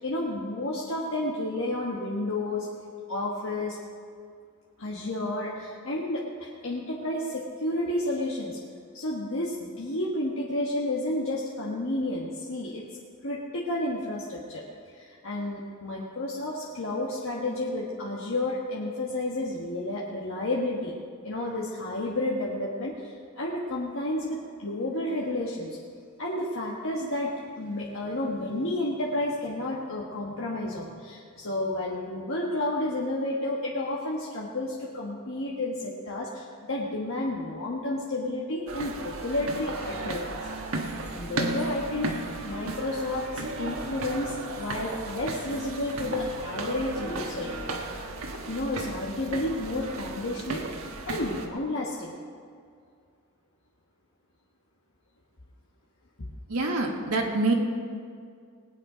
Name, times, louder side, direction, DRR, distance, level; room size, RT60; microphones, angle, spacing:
voice 1, 0.0-2.7 3.1-3.8 4.8-8.6 8.9-12.8 13.2-20.9 21.2-25.8 26.2-40.4 41.1-47.6 48.5-52.2, left 1 dB, 60° left, -4 dB, 1.4 m, -31 dB
sound 1, 38.7-51.5, right 2 dB, 70° right, 1.4 m, -35 dB
voice 2, 56.5-57.5, right 2 dB, 85° right, 0 dB, 1.7 m, -25 dB
20.0 x 9.1 x 5.1 m, 2.2 s
head